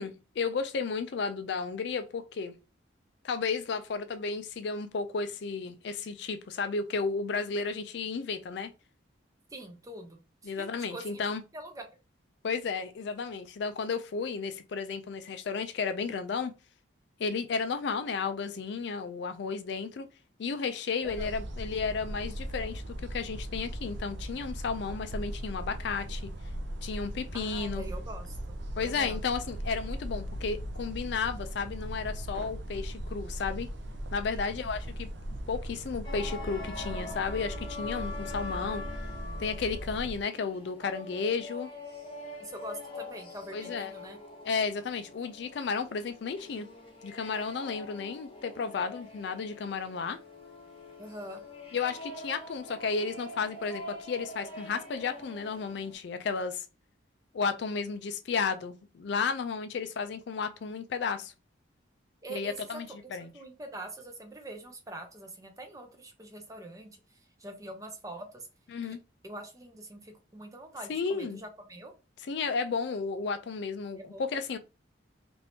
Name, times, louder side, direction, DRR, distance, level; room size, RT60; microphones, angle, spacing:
voice 1, 0.0-2.5 3.2-8.7 10.4-11.4 12.4-16.5 17.2-20.1 20.4-26.2 26.8-27.8 28.8-33.7 34.1-35.1 35.5-38.8 39.4-41.7 43.5-43.9 44.4-46.7 47.0-50.2 51.7-56.7 57.3-61.3 62.3-63.3 68.7-69.0 70.9-71.4 72.3-74.6, left 5 dB, 60° left, 0.4 m, -33 dB
voice 2, 9.5-11.2 11.5-11.9 21.0-21.3 27.3-28.4 28.8-29.2 34.3-34.5 42.4-44.2 51.0-51.4 62.2-63.0 63.3-68.5 68.8-69.0 69.2-71.9 74.0-74.2, right 1 dB, 15° right, 0.6 m, -44 dB
sound 1, 21.0-40.2, right 1 dB, 60° right, 0.5 m, -38 dB
sound 2, 36.0-55.9, left 2 dB, 30° left, 0.8 m, -44 dB
2.7 x 2.5 x 3.4 m
head